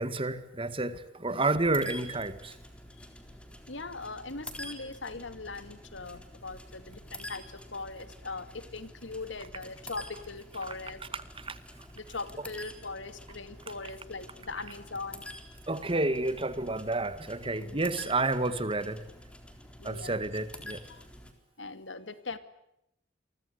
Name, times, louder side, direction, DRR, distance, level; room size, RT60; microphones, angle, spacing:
voice 1, 0.0-2.6 10.5-11.6 12.1-12.5 13.8-13.9 14.6-14.7 15.7-19.1 19.8-20.9, right 2 dB, 30° right, 1.9 m, -31 dB
sound 1, 1.6-21.3, left 1 dB, 5° left, 3.9 m, -47 dB
voice 2, 3.7-11.0 11.9-15.3 17.6-18.1 19.8-20.2 20.9-21.0 21.6-22.4, left 3 dB, 80° left, 2.3 m, -40 dB
29.5 x 24.0 x 8.1 m
head